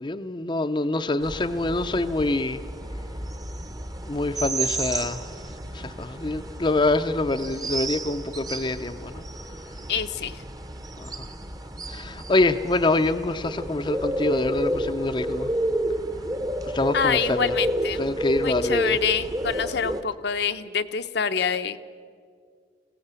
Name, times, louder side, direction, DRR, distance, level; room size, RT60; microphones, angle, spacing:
voice 1, 0.0-2.6 4.1-5.3 5.7-9.2 11.0-11.3 11.9-15.5 16.6-17.5 18.0-19.0, left 2 dB, 25° left, 0.5 m, -25 dB
sound 1, 1.2-20.0, right 1 dB, 20° right, 0.9 m, -31 dB
voice 2, 9.9-10.4 16.9-21.8, left 6 dB, 60° left, 0.7 m, -26 dB
21.5 x 16.5 x 8.1 m
head